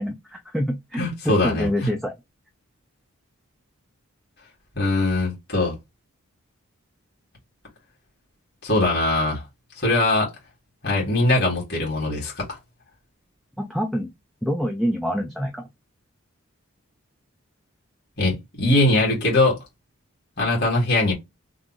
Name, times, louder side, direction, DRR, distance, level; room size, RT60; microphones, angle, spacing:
voice 1, 0.0-2.1 13.6-14.1 14.4-15.7, equal, ahead, 0.4 m, -26 dB
voice 2, 1.0-1.7 4.8-5.7 8.6-9.4 9.8-10.3 10.8-12.6 18.2-19.6 20.4-21.1, left 2 dB, 50° left, 2.1 m, -21 dB
3.7 x 2.6 x 2.9 m
head